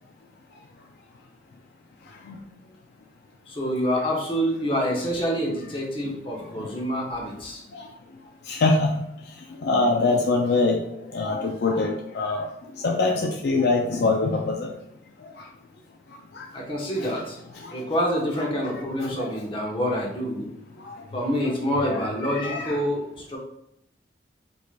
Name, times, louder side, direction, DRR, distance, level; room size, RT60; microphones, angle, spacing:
voice 1, 3.5-7.6 16.5-17.4 17.7-20.5 21.1-23.4, equal, 30° left, -2 dB, 0.8 m, -27 dB
voice 2, 8.5-9.0 9.6-10.8 11.1-12.5 12.8-14.7 16.3-16.4 17.0-17.2 17.6-17.7 18.4-19.3 20.8-20.9 21.4-22.8, left 3 dB, 65° left, 1 dB, 0.4 m, -24 dB
4.5 x 2.7 x 2.5 m, 0.78 s
head